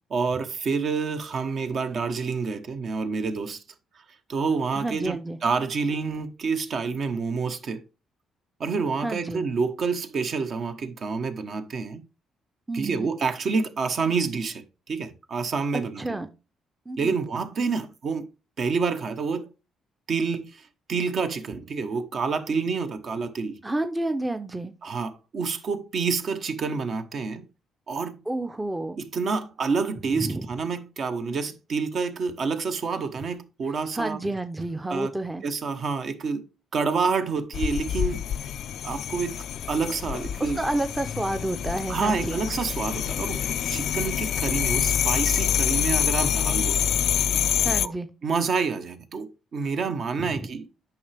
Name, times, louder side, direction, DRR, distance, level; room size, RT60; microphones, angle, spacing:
voice 1, 0.1-3.6 4.3-7.8 8.6-12.0 12.7-16.2 17.0-18.3 18.6-19.5 20.1-23.6 24.8-27.5 27.9-28.2 29.0-34.2 34.9-35.1 35.4-36.4 36.7-38.3 38.8-40.6 41.9-46.8 47.8-47.9 48.2-50.7, right 5 dB, 60° right, 1.1 m, -28 dB
voice 2, 4.8-5.4 9.0-9.4 12.7-13.1 16.0-16.3 16.9-17.1 23.6-24.7 28.3-29.0 30.2-30.5 33.9-35.4 40.4-42.4 45.3-45.4 47.6-48.1 50.2-50.5, right 2 dB, 15° right, 0.6 m, -30 dB
sound 1, 37.5-47.9, left 9 dB, 70° left, 0.3 m, -26 dB
8.5 x 5.9 x 3.4 m
cardioid pair, 75°, 0 cm